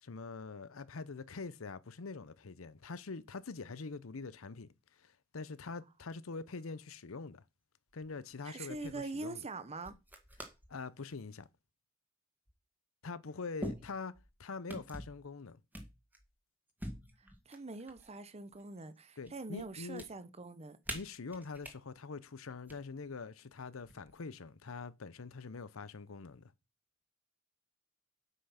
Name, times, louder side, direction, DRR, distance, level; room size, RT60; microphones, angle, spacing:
voice 1, 0.0-4.7 5.0-7.4 7.9-9.5 10.7-11.5 13.0-14.1 14.4-15.6 19.2-20.0 20.9-26.5, left 4 dB, 85° left, 0.7 m, -44 dB
sound 1, 7.9-8.3 8.7-9.0 9.8-10.7 11.1-11.5 12.5-12.6 13.6-14.3 14.7-15.2 15.7-16.3 16.8-18.1 18.5-19.3 19.6-20.1 20.8-21.8 22.5-22.8 23.8-24.3, equal, 10° right, 1.7 m, -45 dB
voice 2, 8.4-9.9 17.5-20.8, right 3 dB, 30° right, 0.8 m, -43 dB
8.3 x 5.7 x 5.7 m
head